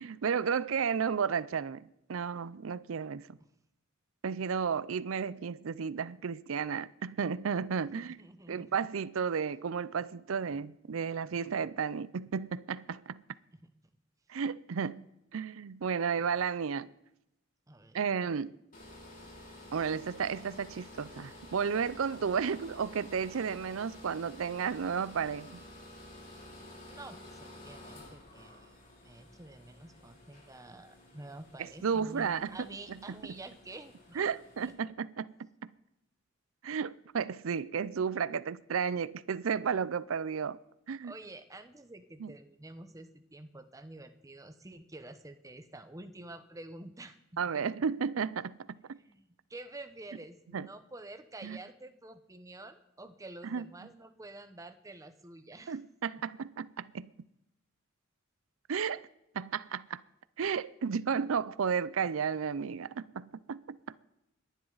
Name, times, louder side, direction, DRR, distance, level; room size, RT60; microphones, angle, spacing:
voice 1, 0.0-3.4 4.2-8.2 8.5-13.2 14.3-15.1 15.3-16.9 17.9-18.5 19.7-25.6 31.6-32.6 34.2-35.7 36.6-40.6 40.9-41.1 42.2-42.3 47.4-49.0 50.5-50.7 51.4-51.6 53.5-53.6 55.7-57.1 58.7-59.1 59.3-60.0 60.4-63.8, right 6 dB, 90° right, 0.5 m, -33 dB
voice 2, 7.8-8.7 17.7-18.1 26.9-34.3 34.6-34.7 41.0-47.4 49.0-55.8, right 2 dB, 15° right, 0.9 m, -49 dB
sound 1, 18.7-34.7, left 1 dB, 45° left, 4.6 m, -52 dB
29.0 x 11.0 x 4.0 m
head